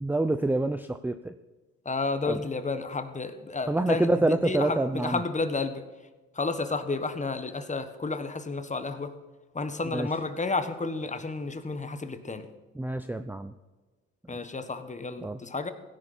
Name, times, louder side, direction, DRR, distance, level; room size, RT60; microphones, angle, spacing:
voice 1, 0.0-1.3 2.3-2.4 3.7-5.2 9.8-10.1 12.8-13.5 14.3-14.4 15.2-15.4, right 2 dB, 5° right, 9 dB, 0.5 m, -27 dB
voice 2, 1.8-4.1 4.4-5.8 6.4-9.1 9.5-12.4 14.3-15.7, left 3 dB, 25° left, 9 dB, 1.4 m, -31 dB
16.5 x 10.5 x 4.4 m, 1.2 s
cardioid pair, 90°, 30 cm